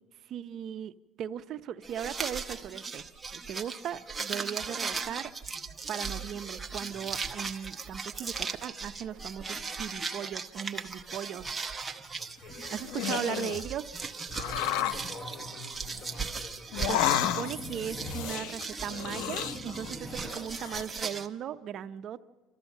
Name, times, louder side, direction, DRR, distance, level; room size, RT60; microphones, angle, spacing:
voice 1, 0.3-0.9 1.2-3.0 3.3-5.3 5.9-11.5 12.7-13.9 16.9-17.0 17.3-22.2, right 9 dB, 45° right, 10 dB, 0.6 m, -37 dB
sound 1, 1.8-21.3, right 4 dB, 10° right, 0.9 m, -38 dB
voice 2, 12.2-13.1 14.3-17.5, left 2 dB, 55° left, 7 dB, 3.5 m, -47 dB
sound 2, 12.5-13.7 14.3-15.1 16.7-17.7 18.0-19.9 20.3-20.8, left 11 dB, 85° left, 0.5 m, -32 dB
sound 3, 15.1-16.5 17.4-18.6 18.8-20.5, equal, 10° left, 1.2 m, -44 dB
28.5 x 13.5 x 7.2 m, 1.5 s
cardioid pair, 150°, 0 cm